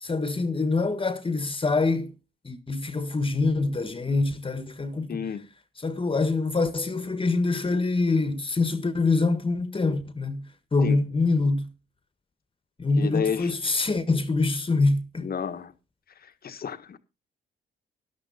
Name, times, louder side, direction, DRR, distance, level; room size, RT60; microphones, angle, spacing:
voice 1, 0.0-2.1 2.4-5.2 5.8-11.7 12.8-15.3, left 3 dB, 25° left, 1.6 m, -25 dB
voice 2, 5.1-5.5 10.8-11.0 13.0-13.5 15.2-15.7 16.4-17.0, left 7 dB, 50° left, 1.4 m, -31 dB
12.5 x 11.5 x 4.2 m
cardioid pair, 70°, 19 cm